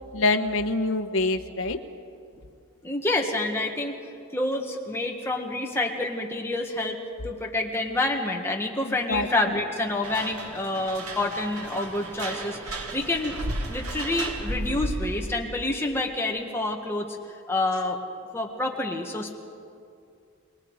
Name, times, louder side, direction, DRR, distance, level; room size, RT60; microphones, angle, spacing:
voice 1, 0.1-1.8 8.9-9.3, left 2 dB, 60° left, 6 dB, 1.1 m, -25 dB
voice 2, 2.8-4.0 4.3-7.0 7.2-13.4 13.7-17.1 17.5-18.0 18.3-19.3, left 2 dB, 10° left, 0 dB, 1.7 m, -28 dB
sound 1, 10.0-15.2, right 1 dB, 85° right, 2.2 m, -34 dB
29.0 x 21.5 x 4.9 m, 2.4 s
head